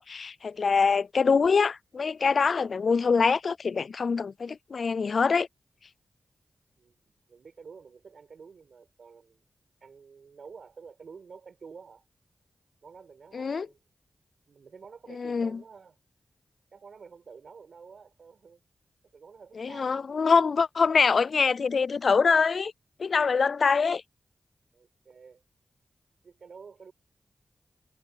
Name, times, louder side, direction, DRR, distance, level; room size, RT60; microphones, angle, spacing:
voice 1, 0.0-5.5 13.3-13.7 15.1-15.6 19.6-22.7 23.0-24.0, left 5 dB, 70° left, 0.3 m, -24 dB
voice 2, 6.8-9.4 9.8-12.1 12.8-13.8 14.5-16.0 16.7-18.6 19.1-20.1 24.7-25.4 26.2-26.9, right 5 dB, 75° right, 5.2 m, -50 dB
cardioid pair, 45°, 0 cm